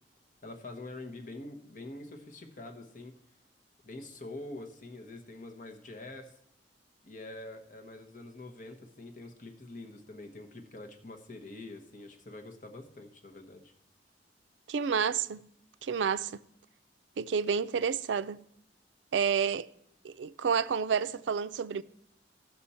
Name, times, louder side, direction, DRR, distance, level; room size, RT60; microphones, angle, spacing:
voice 1, 0.4-3.1 3.8-6.4 7.0-13.7, left 2 dB, 50° left, 1.1 m, -45 dB
voice 2, 14.7-15.5 15.8-16.4 17.2-18.4 19.1-19.7 20.0-21.8, right 6 dB, 80° right, 0.4 m, -30 dB
16.0 x 6.2 x 4.3 m
head